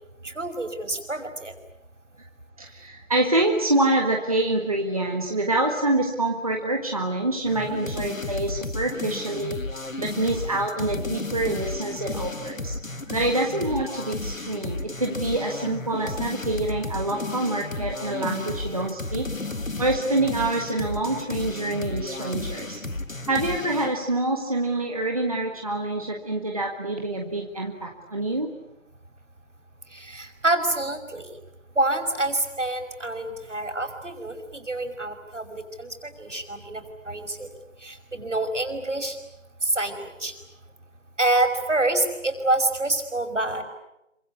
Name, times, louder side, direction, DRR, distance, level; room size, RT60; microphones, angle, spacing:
voice 1, 0.2-1.5 13.1-13.3 29.9-31.3 31.8-37.5 37.8-39.2 39.6-40.3 41.2-43.6, right 2 dB, 70° right, 6 dB, 5.6 m, -27 dB
voice 2, 2.6-9.6 10.0-12.8 13.1-19.3 19.8-22.8 23.3-28.5, right 2 dB, 30° right, 1 dB, 1.7 m, -26 dB
sound 1, 7.5-24.0, left 2 dB, 90° left, 2.2 m, -33 dB
27.0 x 25.0 x 8.4 m, 0.87 s
figure-of-eight pair, 175°, 39 cm